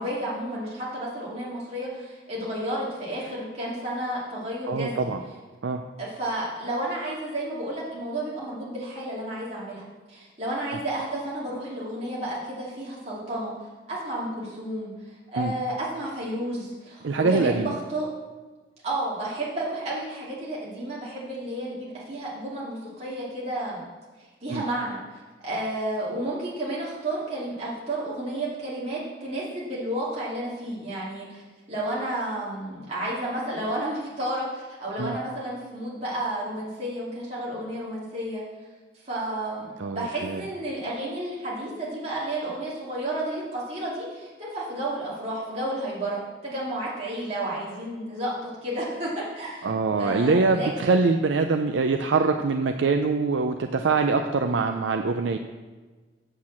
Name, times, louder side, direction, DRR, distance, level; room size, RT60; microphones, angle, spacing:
voice 1, 0.0-5.1 6.0-13.5 13.9-18.1 18.8-23.8 24.4-31.4 31.7-38.4 39.0-50.7, right 1 dB, 35° right, -7 dB, 2.5 m, -31 dB
voice 2, 4.7-5.2 5.6-5.8 15.4-15.5 17.0-17.7 24.5-24.6 35.0-35.2 39.8-40.4 49.6-55.4, right 4 dB, 85° right, 5 dB, 0.5 m, -24 dB
7.9 x 6.5 x 7.2 m, 1.3 s
head